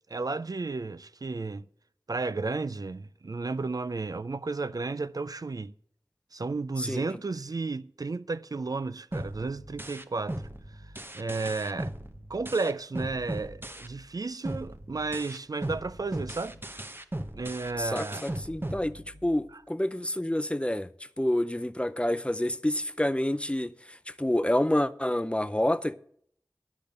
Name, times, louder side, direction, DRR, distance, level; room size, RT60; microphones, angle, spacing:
voice 1, 0.1-1.6 2.1-5.7 6.3-10.4 11.1-11.9 12.3-16.6 17.3-18.3, right 3 dB, 60° right, 0.4 m, -33 dB
sound 1, 9.1-14.1 14.4-19.5, right 1 dB, 30° right, 0.9 m, -38 dB
voice 2, 17.8-20.9 21.2-26.0, left 1 dB, 15° left, 0.5 m, -28 dB
10.0 x 6.9 x 6.5 m
wide cardioid pair, 45°, 7 cm